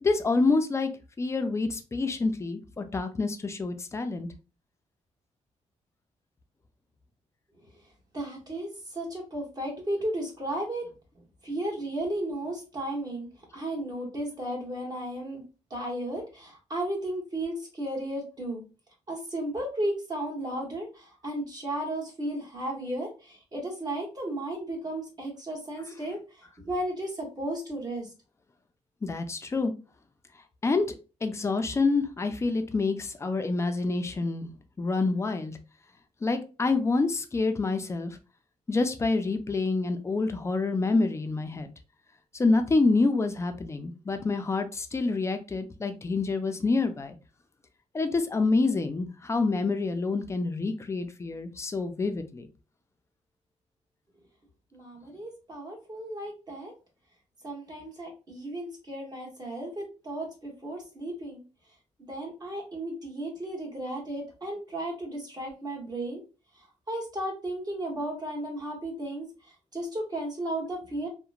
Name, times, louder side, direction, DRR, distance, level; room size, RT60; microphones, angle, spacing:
voice 1, 0.0-0.9 1.2-4.3 29.0-29.7 30.6-30.9 31.2-34.5 34.8-35.6 36.2-38.2 38.7-41.7 42.3-47.1 47.9-52.5, left 3 dB, 25° left, 0.4 m, -27 dB
voice 2, 8.1-10.8 11.4-15.4 15.7-18.6 19.1-26.2 26.6-28.1 54.7-56.7 57.4-61.4 62.0-66.2 66.9-69.3 69.7-71.1, right 1 dB, 35° right, 1.1 m, -34 dB
2.8 x 2.1 x 2.4 m
cardioid pair, 110°, 12 cm